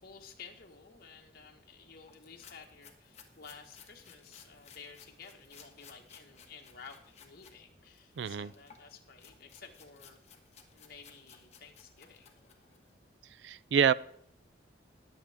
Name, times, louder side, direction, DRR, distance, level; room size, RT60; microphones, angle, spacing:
voice 1, 0.0-10.2 10.7-12.9, left 5 dB, 55° left, 2 dB, 1.5 m, -53 dB
sound 1, 2.1-7.6 7.9-12.9, left 7 dB, 40° left, 1.5 m, -58 dB
voice 2, 8.2-8.5 13.4-13.9, right 7 dB, 70° right, 19 dB, 0.4 m, -27 dB
20.5 x 7.5 x 3.5 m, 0.67 s
head